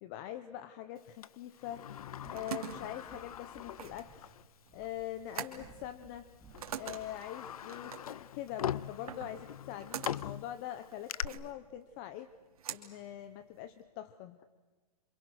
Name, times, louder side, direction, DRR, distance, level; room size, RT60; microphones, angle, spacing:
voice 1, 0.0-1.9 2.3-4.3 4.7-6.3 6.7-12.3 12.7-14.4, left 12 dB, 25° left, 12 dB, 0.9 m, -43 dB
Sliding door, 1.2-4.5 4.8-4.9 5.9-6.1 6.5-11.2, left 10 dB, 70° left, 0.8 m, -42 dB
sound 1, 1.8-7.2, right 2 dB, ahead, 2.6 m, -59 dB
sound 2, 2.2-13.8, right 9 dB, 70° right, 3.0 m, -46 dB
27.5 x 27.0 x 6.5 m, 1.3 s
hypercardioid pair, 160°, 19 cm